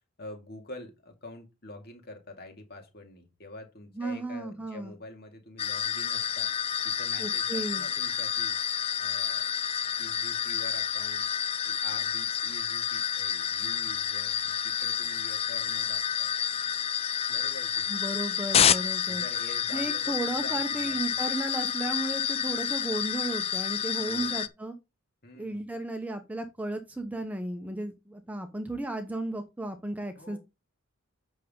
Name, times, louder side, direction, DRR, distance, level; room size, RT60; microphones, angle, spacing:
voice 1, 0.2-6.5 6.8-8.6 9.0-9.5 10.0-11.3 11.6-16.3 17.3-17.9 19.1-21.3 24.1-24.4 25.2-25.7 30.2-30.4, left 2 dB, 45° left, 2.4 m, -46 dB
voice 2, 4.0-4.9 7.2-7.8 17.9-19.2 19.7-24.7 25.4-30.4, right 2 dB, 5° right, 0.9 m, -34 dB
sound 1, 5.6-24.5, left 9 dB, 30° left, 0.4 m, -29 dB
8.4 x 6.4 x 3.8 m
head